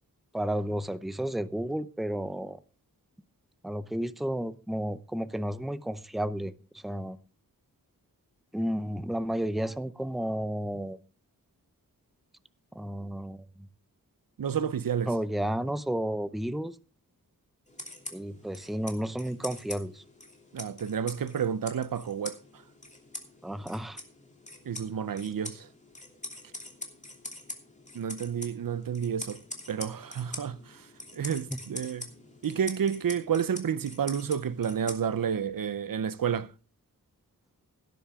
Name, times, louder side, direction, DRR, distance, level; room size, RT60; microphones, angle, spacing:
voice 1, 0.3-2.6 3.6-7.2 8.5-11.0 12.7-13.7 15.1-16.8 18.1-20.0 23.4-24.0 31.5-31.6, right 1 dB, ahead, 0.6 m, -32 dB
voice 2, 14.4-15.1 20.5-22.4 24.7-25.7 27.9-29.4 29.7-30.6 31.1-32.1 32.4-36.5, right 8 dB, 70° right, 0.7 m, -30 dB
sound 1, 17.7-35.4, left 2 dB, 20° left, 2.9 m, -44 dB
17.5 x 10.0 x 3.6 m
wide cardioid pair, 100°, 35 cm